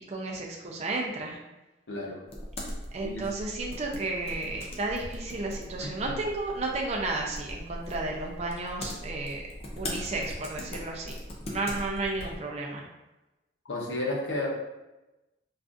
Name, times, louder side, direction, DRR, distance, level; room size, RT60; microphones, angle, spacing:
voice 1, 0.1-1.4 2.9-9.4 9.8-11.2 11.5-12.8, right 2 dB, 35° right, -1 dB, 0.4 m, -33 dB
voice 2, 1.9-2.2 3.0-3.2 5.8-6.1 13.7-14.5, left 2 dB, 75° left, -3 dB, 0.7 m, -32 dB
sound 1, 2.3-12.4, left 1 dB, 30° left, 0.5 m, -40 dB
3.6 x 2.4 x 2.5 m, 1.0 s
head